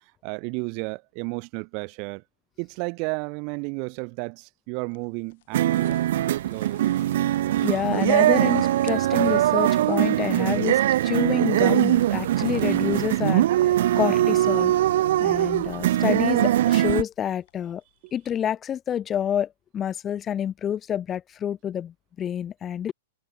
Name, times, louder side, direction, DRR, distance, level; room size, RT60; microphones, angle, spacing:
voice 1, 0.2-2.2 2.6-6.0 6.5-6.9 18.0-18.1, right 35 dB, 40° right, 1.9 m, -32 dB
sound 1, 4.8-18.4, left 16 dB, 50° left, 1.7 m, -51 dB
sound 2, 5.5-17.0, right 13 dB, 55° right, 0.4 m, -21 dB
voice 2, 7.6-14.7 15.2-17.8 18.1-22.9, left 9 dB, 25° left, 1.0 m, -28 dB
figure-of-eight pair, 105°, 0 cm